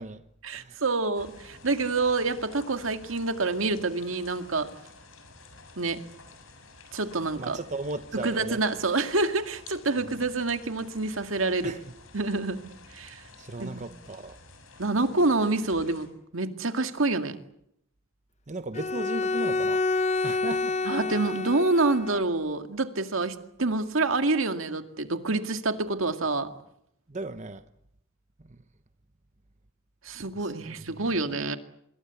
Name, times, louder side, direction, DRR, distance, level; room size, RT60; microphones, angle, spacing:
voice 1, 0.4-4.7 5.8-6.0 6.9-7.6 8.2-11.7 12.1-13.2 13.6-13.8 14.8-16.1 16.3-17.4 20.9-26.5 30.0-31.6, right 3 dB, 75° right, 2.1 m, -27 dB
sound 1, 1.1-16.1, left 3 dB, 80° left, 6.9 m, -51 dB
voice 2, 7.3-8.6 10.0-10.2 11.6-11.8 13.4-14.4 18.5-19.9 20.2-20.8 27.1-27.6 28.5-28.6 30.3-30.8, right 2 dB, 35° right, 1.0 m, -36 dB
Bowed string instrument, 18.7-22.2, left 3 dB, 35° left, 1.0 m, -28 dB
26.5 x 23.0 x 8.3 m
head